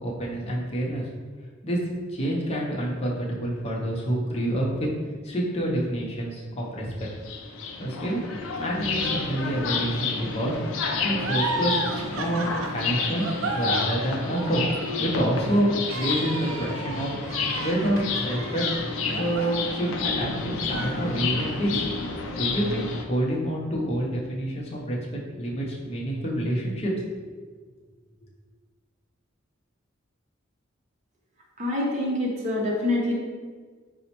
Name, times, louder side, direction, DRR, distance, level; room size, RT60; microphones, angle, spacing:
voice 1, 0.0-1.1 1.6-1.8 2.1-4.9 5.2-7.1 7.8-8.2 8.6-10.6 11.0-11.8 12.1-13.3 13.5-14.7 15.0-17.1 17.6-18.6 18.9-20.3 20.7-21.8 22.4-26.9, right 1 dB, 30° left, -3 dB, 0.5 m, -27 dB
sound 1, 7.0-23.0, left 4 dB, 85° left, 0.4 m, -30 dB
sound 2, 11.2-20.2 20.6-21.6, right 3 dB, 90° right, 0.3 m, -34 dB
voice 2, 31.6-33.1, left 1 dB, 40° right, -3 dB, 0.7 m, -25 dB
4.0 x 2.0 x 2.9 m, 1.5 s
head